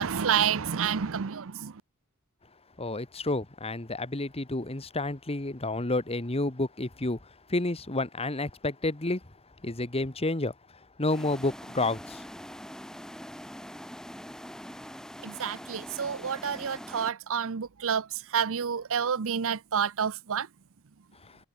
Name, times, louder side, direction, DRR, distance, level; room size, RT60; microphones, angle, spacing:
voice 1, 0.0-1.8 15.2-20.5, right 7 dB, 65° right, 0.7 m, -29 dB
voice 2, 2.8-7.2 7.5-9.2 9.6-10.5 11.0-12.2, left 2 dB, 25° left, 1.5 m, -30 dB
sound 1, 11.1-17.1, equal, 5° left, 1.4 m, -43 dB
head